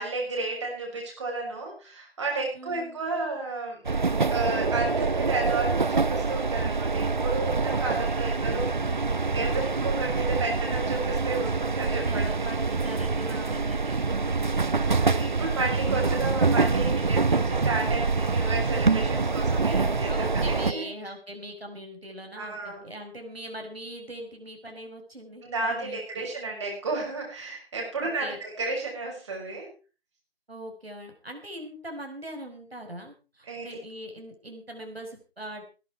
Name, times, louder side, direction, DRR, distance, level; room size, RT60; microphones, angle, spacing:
voice 1, 0.0-3.8 4.3-8.9 9.3-12.5 13.3-13.5 14.8-20.1 20.4-20.8 22.3-22.9 25.4-29.7 33.5-33.8, right 3 dB, 30° right, -1 dB, 6.2 m, -32 dB
voice 2, 2.5-3.0 8.1-9.0 10.5-10.6 12.1-14.7 20.1-26.2 28.0-28.4 30.5-35.6, equal, 70° right, 3 dB, 5.3 m, -41 dB
sound 1, 3.8-20.7, right 4 dB, 50° right, 0.8 m, -25 dB
17.5 x 12.0 x 4.6 m, 0.35 s
figure-of-eight pair, 165°, 31 cm